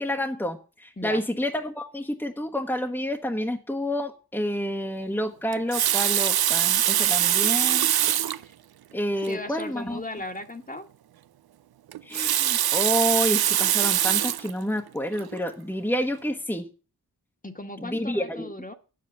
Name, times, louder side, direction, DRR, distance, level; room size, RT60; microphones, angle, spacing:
voice 1, 0.0-7.9 8.9-10.0 12.0-16.6 17.8-18.5, equal, 5° left, 2 dB, 1.1 m, -29 dB
Water tap faucet, 5.5-8.4 9.2-9.3 9.6-9.7 11.9-14.5 15.2-15.4, right 11 dB, 90° right, 0.5 m, -23 dB
voice 2, 9.2-10.9 17.4-18.7, left 2 dB, 20° left, 6 dB, 1.4 m, -37 dB
9.1 x 7.8 x 7.0 m, 0.35 s
wide cardioid pair, 70°, 37 cm